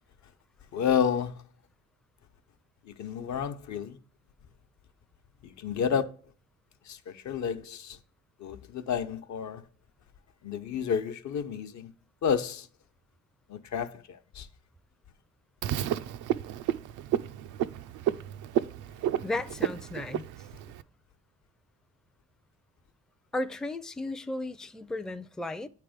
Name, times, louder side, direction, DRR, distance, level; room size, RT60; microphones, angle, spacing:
voice 1, 0.7-1.4 2.9-4.0 5.4-6.1 6.9-8.0 8.4-9.6 10.4-11.9 12.2-12.7 13.5-14.5 19.1-19.2, left 7 dB, 65° left, 0.8 m, -30 dB
Frog, 15.6-20.8, right 11 dB, 90° right, 0.5 m, -31 dB
voice 2, 19.2-20.3 23.3-25.7, left 2 dB, ahead, 0.4 m, -34 dB
8.7 x 3.4 x 4.9 m
cardioid pair, 90°, 30 cm